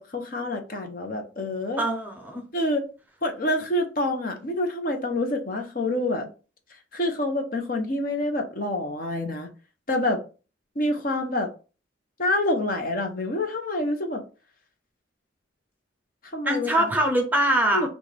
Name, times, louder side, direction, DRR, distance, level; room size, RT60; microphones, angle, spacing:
voice 1, 0.0-1.8 2.5-2.8 3.2-6.3 6.9-9.5 9.9-10.2 10.8-11.5 12.2-14.2 16.3-16.9 17.7-17.9, left 1 dB, 45° left, 4 dB, 0.9 m, -27 dB
voice 2, 1.8-2.4 16.4-17.9, right 1 dB, 10° right, 3 dB, 0.8 m, -23 dB
6.1 x 2.5 x 3.4 m, 0.33 s
head